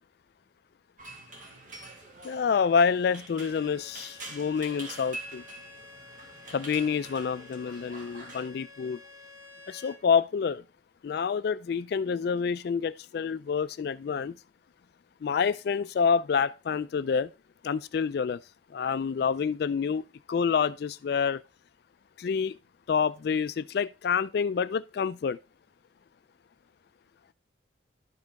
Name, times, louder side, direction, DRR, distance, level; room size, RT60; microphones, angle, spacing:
sound 1, 1.0-8.5, right 2 dB, 45° right, 1.7 m, -45 dB
voice 1, 2.2-5.4 6.5-9.0 9.7-10.6 11.0-14.3 15.2-17.3 17.6-18.4 18.7-21.4 22.2-22.5 22.9-25.4, left 6 dB, 55° left, 0.3 m, -27 dB
Bowed string instrument, 3.2-10.1, left 2 dB, 20° right, 1.1 m, -51 dB
11.5 x 5.2 x 3.5 m
head